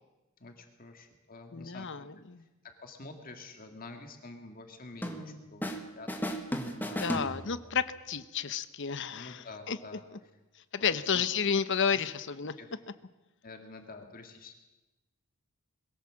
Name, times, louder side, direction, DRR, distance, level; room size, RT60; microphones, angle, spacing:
voice 1, 0.4-1.9 2.6-6.4 6.8-7.7 9.1-10.0 10.8-11.3 11.9-12.1 12.6-12.7 13.4-14.5, left 3 dB, 40° left, 4 dB, 2.0 m, -48 dB
voice 2, 1.5-2.4 7.0-9.8 10.7-12.5, left 6 dB, 55° left, 14 dB, 0.9 m, -31 dB
sound 1, 5.0-5.8 6.1-7.8, equal, 10° left, 1.7 m, -35 dB
22.0 x 16.5 x 7.5 m, 1.1 s
head